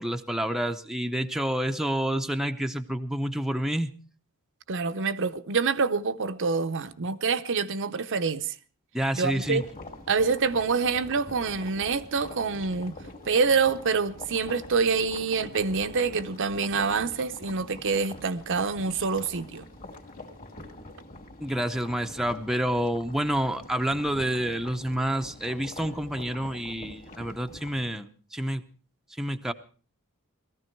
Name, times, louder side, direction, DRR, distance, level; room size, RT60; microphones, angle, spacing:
voice 1, 0.0-3.9 8.9-9.6 21.4-28.6 29.2-29.5, right 1 dB, ahead, 0.7 m, -28 dB
voice 2, 4.7-8.5 9.1-9.6 10.1-12.9 13.3-19.6, right 5 dB, 55° right, 0.7 m, -26 dB
sound 1, 9.3-27.9, left 2 dB, 40° left, 2.5 m, -45 dB
18.5 x 14.0 x 4.5 m
head